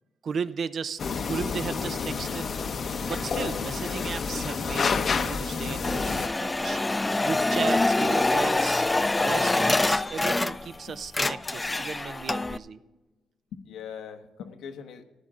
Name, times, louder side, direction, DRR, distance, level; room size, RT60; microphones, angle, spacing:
voice 1, 0.2-1.0 1.3-2.5 3.0-8.9 9.2-12.8, right 6 dB, 50° right, 13 dB, 0.6 m, -35 dB
sound 1, 1.0-6.3, left 5 dB, 45° left, 0.8 m, -29 dB
sound 2, 5.8-10.8 11.0-12.6, left 2 dB, 15° left, 0.3 m, -25 dB
voice 2, 13.5-15.0, left 7 dB, 80° left, 6 dB, 1.1 m, -41 dB
14.5 x 11.0 x 3.7 m, 1.1 s
cardioid pair, 90°, 0 cm